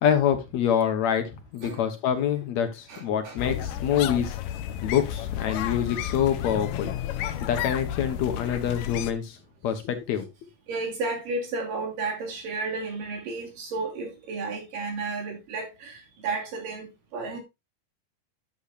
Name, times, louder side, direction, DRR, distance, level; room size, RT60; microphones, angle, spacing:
voice 1, 0.0-4.4 4.8-6.9 7.4-9.4 9.6-10.3, left 9 dB, 65° left, 2.2 m, -26 dB
voice 2, 2.9-3.4 7.4-7.5 10.7-17.4, right 3 dB, 90° right, 4.4 m, -33 dB
sound 1, 3.4-9.1, left 11 dB, 85° left, 2.4 m, -32 dB
11.5 x 7.2 x 2.5 m
omnidirectional pair, 3.8 m